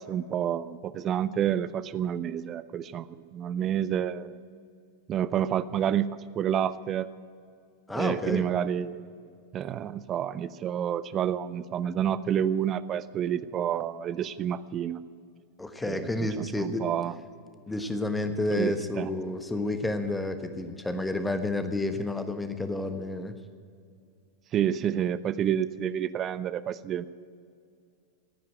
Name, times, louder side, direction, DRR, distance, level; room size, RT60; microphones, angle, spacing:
voice 1, 0.0-4.4 5.1-6.1 6.3-7.1 7.9-9.0 9.5-15.0 15.9-17.1 18.6-19.1 24.5-27.1, right 9 dB, 30° right, 17 dB, 0.5 m, -29 dB
voice 2, 7.9-8.4 15.6-16.8 17.7-23.3, left 2 dB, 5° left, 8 dB, 1.3 m, -30 dB
16.0 x 9.2 x 9.0 m, 2.3 s
figure-of-eight pair, 90°, 0 cm